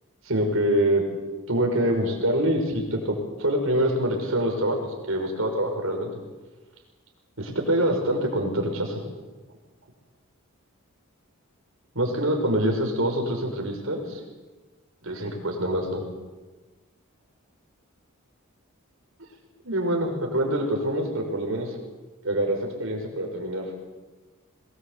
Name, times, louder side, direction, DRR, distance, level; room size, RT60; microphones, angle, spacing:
voice 1, 0.2-1.0 1.5-6.1 7.4-9.0 11.9-14.2 15.0-16.0 19.6-21.7 22.2-23.8, right 1 dB, 65° right, 2 dB, 5.6 m, -25 dB
22.5 x 19.5 x 8.2 m, 1.2 s
head